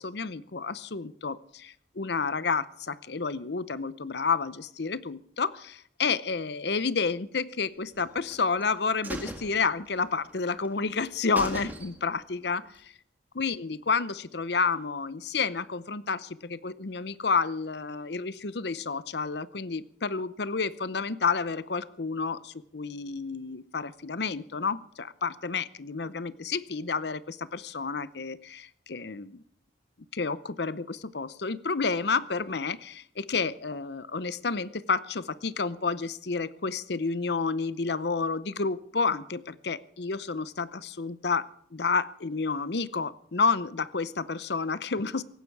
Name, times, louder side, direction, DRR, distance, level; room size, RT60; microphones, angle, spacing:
voice 1, 0.0-12.9 13.3-29.4 30.1-45.2, left 4 dB, 60° left, 17 dB, 0.7 m, -30 dB
sound 1, 8.0-8.6 9.0-10.3 10.6-10.7 11.0-11.1 11.4-12.3 12.6-12.7, right 1 dB, 10° right, 1.6 m, -39 dB
18.0 x 15.5 x 4.7 m, 0.66 s
head